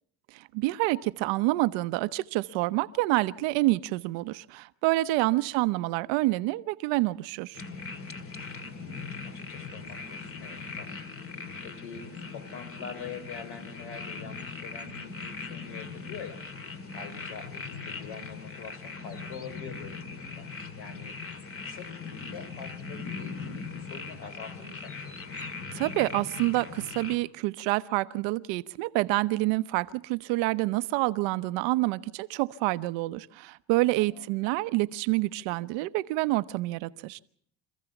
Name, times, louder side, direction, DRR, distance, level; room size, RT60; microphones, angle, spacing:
voice 1, 0.3-7.6 25.7-37.2, right 20 dB, 80° right, 0.9 m, -27 dB
voice 2, 5.2-5.6 8.6-9.1 9.3-11.0 11.3-16.4 16.9-20.5 20.8-21.2 21.6-25.2 34.0-34.3, left 6 dB, 75° left, 4.4 m, -45 dB
sound 1, 7.5-27.2, left 4 dB, 30° left, 2.2 m, -40 dB
26.5 x 15.0 x 7.1 m
supercardioid pair, 100°, 44 cm